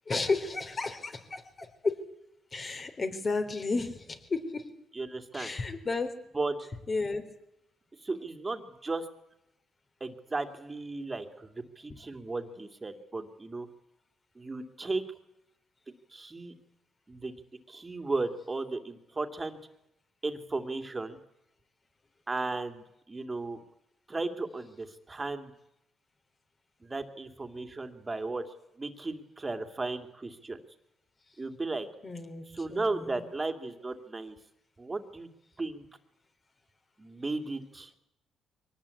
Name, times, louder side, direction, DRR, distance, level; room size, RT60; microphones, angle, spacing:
voice 1, 0.1-2.0 2.5-4.6 5.3-6.1 6.9-7.2 32.0-33.2, left 3 dB, 35° left, 7 dB, 3.8 m, -33 dB
voice 2, 4.9-5.5 6.3-6.7 8.0-9.1 10.0-13.7 14.3-15.0 16.1-16.5 17.1-17.3 17.7-19.6 20.2-21.2 22.3-23.6 24.1-25.5 26.8-28.4 28.8-30.6 31.4-31.9 32.5-34.4 34.8-35.3 35.6-35.9 37.0-37.9, right 3 dB, 25° right, 7 dB, 2.7 m, -35 dB
23.5 x 19.0 x 8.6 m, 0.83 s
cardioid pair, 90°, 0 cm